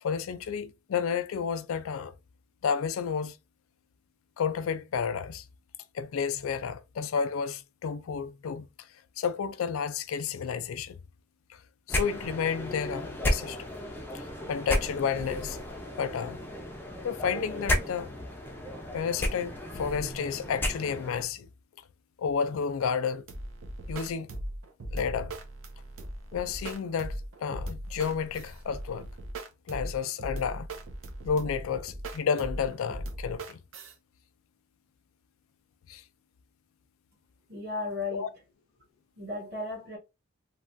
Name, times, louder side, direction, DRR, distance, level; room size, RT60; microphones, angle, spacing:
voice 1, 0.0-2.1 2.6-3.4 4.4-5.4 5.9-8.7 9.2-11.0 11.9-13.6 14.1-15.6 16.0-16.4 17.0-18.1 18.9-21.5 22.2-23.2 23.9-24.3 24.9-25.3 26.3-29.0 29.7-30.7 31.2-33.6 35.9-36.0 38.1-38.3, left 6 dB, 75° left, 0.4 m, -31 dB
sound 1, 11.9-21.3, left 1 dB, 10° left, 0.4 m, -33 dB
sound 2, 23.3-33.9, right 1 dB, 70° right, 0.6 m, -39 dB
voice 2, 37.5-38.3 39.2-40.0, left 3 dB, 50° right, 1.8 m, -35 dB
3.2 x 2.3 x 2.5 m
head